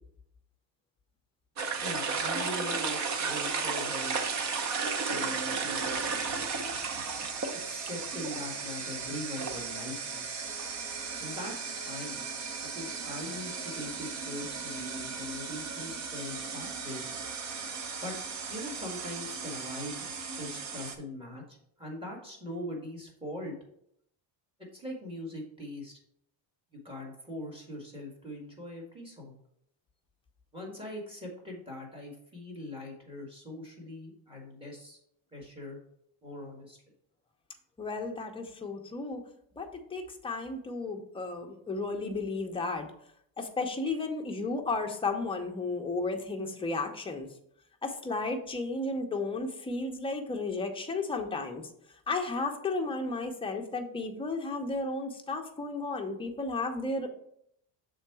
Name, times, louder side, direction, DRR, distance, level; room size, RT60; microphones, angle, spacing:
sound 1, 1.6-20.9, right 5 dB, 35° right, 0.8 m, -35 dB
voice 1, 1.8-4.4 5.1-6.4 7.6-10.3 11.2-12.2 12.7-17.0 18.0-18.2 18.5-20.0 20.3-23.5 24.7-26.0 26.8-29.4 30.5-35.0 35.3-35.8 36.2-36.8, left 1 dB, 10° right, -1 dB, 1.8 m, -41 dB
voice 2, 37.8-39.2 39.6-42.9 43.4-47.3 47.8-51.6 52.1-57.1, left 3 dB, 10° left, 2 dB, 0.7 m, -33 dB
6.4 x 3.8 x 4.6 m, 0.70 s
cardioid pair, 150°, 46 cm